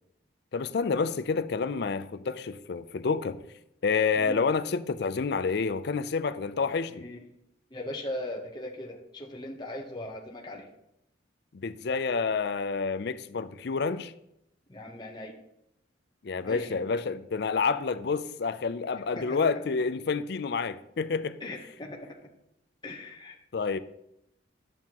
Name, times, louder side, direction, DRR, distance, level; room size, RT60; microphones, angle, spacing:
voice 1, 0.5-3.4 3.8-7.1 11.5-14.1 16.2-21.4 23.5-23.8, left 5 dB, 60° left, 0.4 m, -29 dB
voice 2, 7.7-10.7 14.7-15.3 16.4-16.8 19.1-19.4 21.4-22.2 22.8-23.4, left 1 dB, 25° left, 0.9 m, -39 dB
11.0 x 7.6 x 2.9 m
head